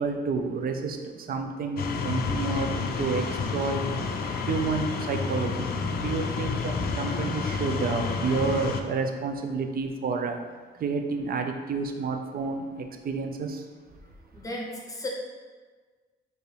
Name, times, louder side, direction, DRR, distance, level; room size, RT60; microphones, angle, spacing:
voice 1, 0.0-3.3 3.5-3.8 4.5-10.4 10.8-13.7, right 4 dB, 50° right, 5 dB, 0.5 m, -30 dB
sound 1, 1.8-8.8, left 4 dB, 50° left, 0.4 m, -30 dB
voice 2, 14.3-15.1, left 1 dB, 15° left, -1 dB, 0.9 m, -35 dB
4.4 x 2.6 x 3.3 m, 1.4 s
cardioid pair, 90°, 20 cm